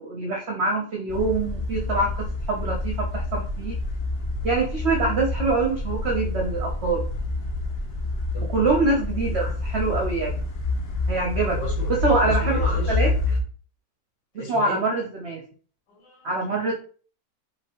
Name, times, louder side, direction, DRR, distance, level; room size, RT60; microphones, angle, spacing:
voice 1, 0.0-3.8 4.4-7.1 8.5-10.4 11.1-11.6 11.9-13.1 14.3-15.4 16.2-16.7, right 3 dB, 55° right, 0 dB, 0.8 m, -25 dB
sound 1, 1.1-13.4, left 2 dB, 50° left, 0.7 m, -27 dB
voice 2, 11.5-11.9 12.2-13.0 14.3-14.8 15.9-16.3, equal, 85° left, -1 dB, 2.3 m, -35 dB
4.9 x 3.1 x 2.9 m, 0.43 s
omnidirectional pair, 1.9 m